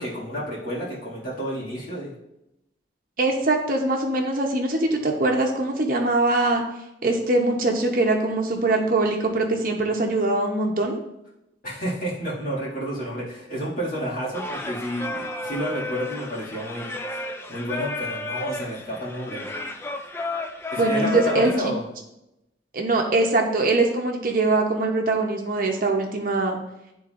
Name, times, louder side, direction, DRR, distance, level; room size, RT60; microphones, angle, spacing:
voice 1, 0.0-2.1 11.6-16.9 17.5-19.4 20.7-21.8, right 1 dB, 50° left, -7 dB, 2.2 m, -30 dB
voice 2, 3.2-6.6 7.0-11.0 20.8-21.7 22.7-26.6, right 2 dB, 50° right, 2 dB, 0.8 m, -22 dB
Singing, 14.3-21.6, left 2 dB, 15° left, 0.3 m, -32 dB
10.5 x 3.9 x 2.5 m, 0.88 s
head